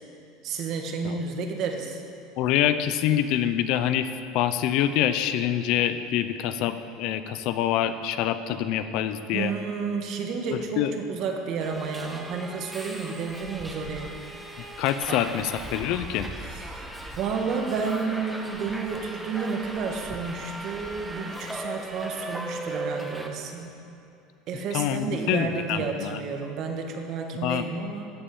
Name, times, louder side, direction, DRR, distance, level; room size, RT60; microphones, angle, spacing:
voice 1, 0.4-2.0 9.3-10.8 11.1-14.1 16.7-16.8 17.2-23.7 24.5-28.1, right 5 dB, 40° right, 3 dB, 1.7 m, -31 dB
voice 2, 2.4-4.1 4.3-9.5 10.5-10.9 14.8-16.3 24.7-26.2 27.4-27.7, left 10 dB, 50° left, 11 dB, 0.6 m, -26 dB
Subway metro underground, 11.6-23.3, right 1 dB, 5° right, 0.9 m, -38 dB
14.0 x 8.9 x 8.7 m, 2.6 s
cardioid pair, 170°, 0 cm